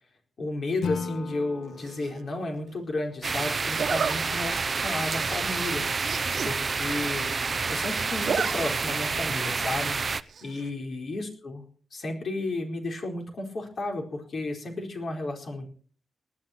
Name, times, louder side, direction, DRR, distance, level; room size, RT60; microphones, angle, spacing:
voice 1, 0.4-5.9 6.4-7.3 7.7-10.0 10.4-11.6 11.9-15.7, left 2 dB, 45° left, 2 dB, 4.4 m, -33 dB
Acoustic guitar / Strum, 0.8-4.0, left 5 dB, 75° left, 1.5 m, -38 dB
Zipper (clothing), 1.8-2.2 3.7-4.1 4.7-4.9 5.2-5.3 5.5-5.6 5.9-6.5 6.9-7.0 7.2-7.7 8.0-8.5 8.9-9.0 10.3-10.7, right 6 dB, 60° right, 1.4 m, -31 dB
sound 1, 3.2-10.2, right 4 dB, 35° right, 0.7 m, -29 dB
19.5 x 13.5 x 4.4 m, 0.43 s
wide cardioid pair, 140°, 0 cm